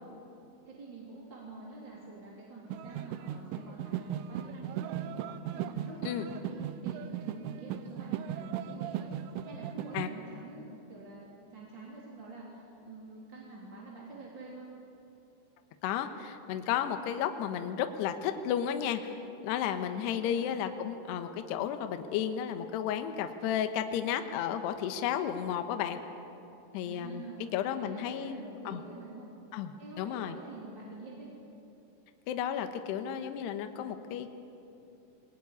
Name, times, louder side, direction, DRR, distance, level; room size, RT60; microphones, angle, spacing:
voice 1, 0.7-5.0 5.5-14.7 19.9-20.5 26.8-29.3 29.8-31.3, right 3 dB, 25° right, -5 dB, 3.1 m, -47 dB
sound 1, 2.7-10.1, right 10 dB, 80° right, 3.3 m, -37 dB
voice 2, 15.8-19.2 19.4-26.0 26.7-27.2 27.5-28.8 29.5-30.4 32.3-34.3, left 9 dB, 70° left, 7 dB, 2.8 m, -33 dB
22.0 x 19.5 x 9.6 m, 2.8 s
omnidirectional pair, 5.9 m